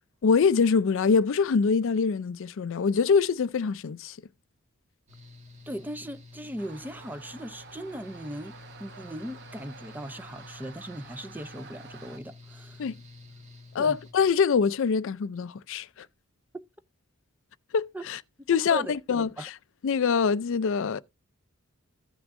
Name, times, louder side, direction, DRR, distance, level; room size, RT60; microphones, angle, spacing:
voice 1, 0.2-4.2 12.8-13.0 13.7-16.1 17.7-18.2 18.5-19.5 19.8-21.0, left 5 dB, 60° left, 0.4 m, -24 dB
Mechanical fan, 5.1-14.1, left 3 dB, 30° right, 1.4 m, -49 dB
voice 2, 5.7-12.8 13.8-14.0 16.5-16.6 17.9-18.0 18.4-19.5, right 1 dB, 10° right, 0.5 m, -39 dB
sound 1, 6.6-12.2, right 5 dB, 50° right, 0.9 m, -49 dB
15.5 x 6.0 x 2.5 m
head